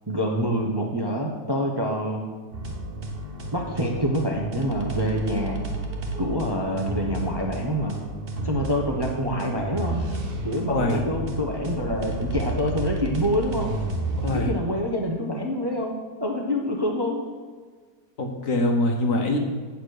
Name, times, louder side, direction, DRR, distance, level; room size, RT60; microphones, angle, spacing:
voice 1, 0.1-2.2 3.5-5.6 6.2-8.0 8.4-10.1 10.4-13.7 14.3-17.2, equal, 20° right, 0 dB, 0.8 m, -26 dB
sound 1, 2.5-14.4, right 1 dB, 40° right, 1.2 m, -31 dB
voice 2, 10.7-11.0 14.2-14.5 18.2-19.4, left 1 dB, 55° left, 3 dB, 1.4 m, -24 dB
8.3 x 7.3 x 6.5 m, 1.5 s
omnidirectional pair, 1.8 m